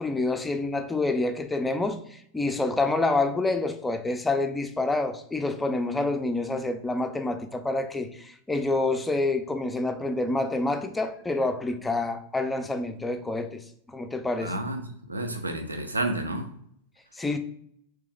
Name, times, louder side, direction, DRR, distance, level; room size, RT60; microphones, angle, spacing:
voice 1, 0.0-14.6 17.2-17.4, left 2 dB, 10° left, 0.4 m, -27 dB
voice 2, 14.4-16.5, right 1 dB, 80° right, 0.6 m, -30 dB
3.3 x 3.2 x 3.5 m
figure-of-eight pair, 90°, 0 cm